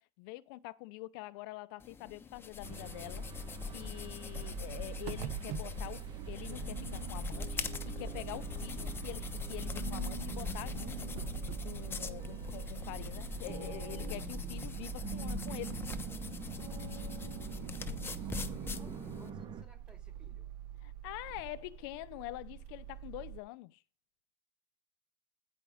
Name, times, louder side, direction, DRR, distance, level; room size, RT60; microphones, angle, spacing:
voice 1, 0.0-3.4 3.7-11.1 11.6-15.8 20.8-23.8, left 19 dB, 80° left, 0.6 m, -45 dB
sound 1, 1.8-19.3, left 5 dB, 20° left, 1.0 m, -42 dB
sound 2, 2.6-19.6, right 7 dB, 35° right, 1.2 m, -46 dB
sound 3, 4.3-23.4, right 11 dB, 65° right, 0.9 m, -45 dB
voice 2, 17.5-20.5, right 2 dB, 5° right, 2.8 m, -61 dB
15.0 x 5.3 x 4.9 m
cardioid pair, 135°, 12 cm